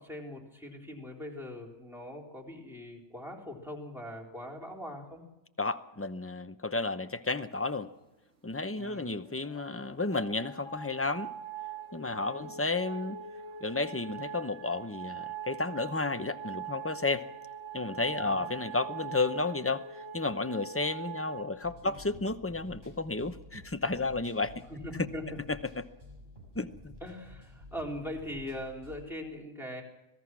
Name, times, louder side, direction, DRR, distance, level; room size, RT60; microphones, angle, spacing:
voice 1, 0.0-5.2 8.8-9.1 12.2-12.5 18.2-18.5 21.8-21.9 24.7-25.4 27.0-29.8, left 1 dB, ahead, 0 dB, 3.8 m, -41 dB
voice 2, 5.6-7.9 8.4-11.3 11.9-13.2 13.6-17.2 17.7-19.8 20.1-24.5 25.5-25.8 26.6-26.9, left 3 dB, 15° left, 10 dB, 0.7 m, -32 dB
sound 1, 8.9-21.4, right 7 dB, 85° right, 2.5 m, -43 dB
sound 2, 21.6-29.0, left 1 dB, 45° right, 6.7 m, -52 dB
26.0 x 18.5 x 6.1 m, 0.95 s
omnidirectional pair, 1.2 m